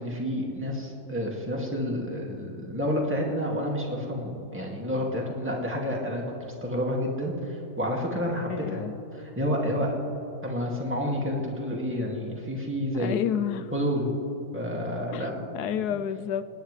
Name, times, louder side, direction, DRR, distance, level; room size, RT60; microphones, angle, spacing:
voice 1, 0.0-6.2 6.6-8.9 9.2-9.9 10.4-13.2 13.7-14.1 14.5-15.5, equal, 10° right, -2 dB, 2.1 m, -29 dB
voice 2, 8.4-8.9 12.9-13.7 15.1-15.3 15.5-16.4, left 9 dB, 90° left, 12 dB, 1.2 m, -30 dB
27.5 x 9.9 x 3.3 m, 2.9 s
omnidirectional pair, 1.6 m